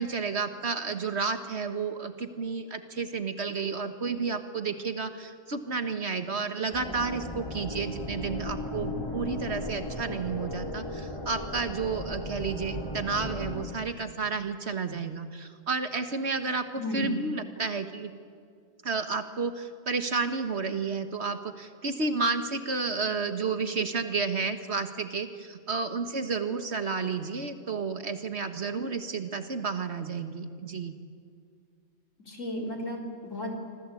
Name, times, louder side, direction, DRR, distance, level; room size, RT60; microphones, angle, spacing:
voice 1, 0.0-18.1 18.8-30.9, right 4 dB, 50° right, 8 dB, 1.7 m, -31 dB
sound 1, 6.7-13.6, left 1 dB, 20° left, 2.6 m, -36 dB
voice 2, 16.8-17.2 32.2-33.5, left 1 dB, 65° left, 1 dB, 4.5 m, -33 dB
26.0 x 25.5 x 8.5 m, 2.2 s
omnidirectional pair, 1.4 m